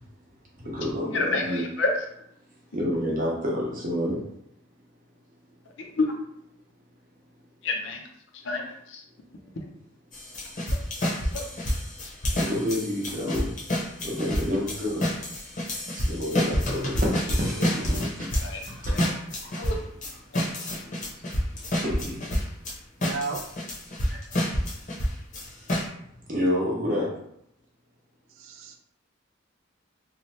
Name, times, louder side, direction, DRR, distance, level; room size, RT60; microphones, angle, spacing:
voice 1, 0.6-1.6 2.7-4.2 12.3-15.0 15.9-18.3 18.7-19.6 20.5-21.2 21.7-22.2 24.1-24.2 26.3-27.2, left 1 dB, 40° right, -3 dB, 0.8 m, -29 dB
voice 2, 1.1-1.9 5.8-6.1 7.6-8.1 8.3-9.0 11.3-11.4 18.4-18.6 18.9-19.1 19.5-19.8, left 3 dB, 70° left, 2 dB, 0.5 m, -29 dB
sound 1, 10.1-22.7 23.0-25.8, equal, 40° left, 0.8 m, -28 dB
voice 3, 17.7-18.1 23.0-23.4 28.3-28.8, right 4 dB, 85° right, 5 dB, 0.4 m, -35 dB
2.7 x 2.1 x 3.1 m, 0.73 s
head